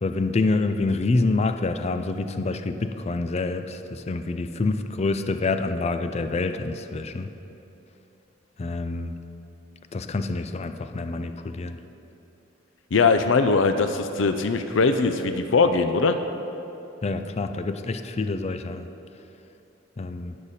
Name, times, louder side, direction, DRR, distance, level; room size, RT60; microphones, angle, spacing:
voice 1, 0.0-7.3 8.6-9.2 9.9-11.8 17.0-18.9 20.0-20.4, left 3 dB, 35° left, 8 dB, 0.4 m, -27 dB
voice 2, 12.9-16.2, left 4 dB, 85° left, 8 dB, 0.5 m, -21 dB
19.5 x 6.6 x 4.2 m, 2.9 s
head